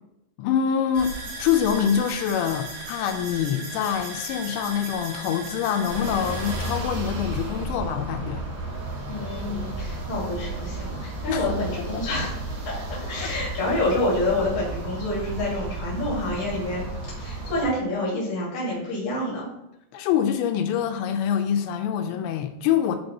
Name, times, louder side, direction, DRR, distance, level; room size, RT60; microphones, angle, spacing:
voice 1, 0.4-1.1 1.4-8.4 11.3-11.5 11.9-12.0 13.2-13.3 19.9-23.0, left 8 dB, 85° left, 6 dB, 2.6 m, -25 dB
sound 1, 0.9-6.8, right 1 dB, 85° right, 4.6 m, -37 dB
sound 2, 5.8-17.7, right 2 dB, 55° right, 3.4 m, -33 dB
voice 2, 9.1-12.3 12.6-16.9 17.2-19.5, left 1 dB, 70° left, -5 dB, 1.5 m, -28 dB
9.8 x 3.5 x 2.7 m, 0.87 s
omnidirectional pair, 5.4 m